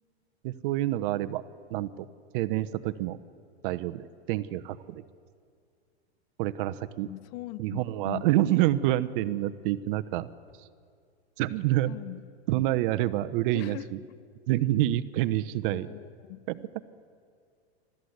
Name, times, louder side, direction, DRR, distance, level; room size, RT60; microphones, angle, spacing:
voice 1, 0.4-1.4 1.7-2.1 2.3-3.2 3.6-5.0 6.4-7.1 7.6-10.3 11.4-12.0 12.5-14.0 14.5-15.9 16.5-16.8, right 15 dB, 55° right, 12 dB, 0.9 m, -27 dB
voice 2, 7.0-8.3 11.9-12.2 13.5-13.9 14.1-14.3 15.7-16.4, left 18 dB, 45° left, 17 dB, 0.8 m, -41 dB
28.5 x 13.5 x 8.1 m, 2.2 s
hypercardioid pair, 120°, 33 cm